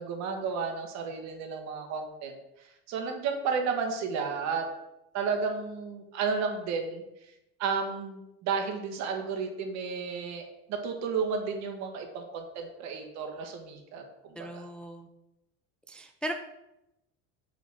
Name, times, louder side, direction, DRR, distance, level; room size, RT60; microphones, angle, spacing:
voice 1, 0.0-2.3 2.9-4.6 5.1-7.0 7.6-14.0 14.3-14.6, right 5 dB, 60° right, 4 dB, 1.6 m, -32 dB
voice 2, 14.4-15.1 15.9-16.3, right 1 dB, 5° left, 5 dB, 0.4 m, -37 dB
6.2 x 4.1 x 6.0 m, 0.88 s
cardioid pair, 130°, 31 cm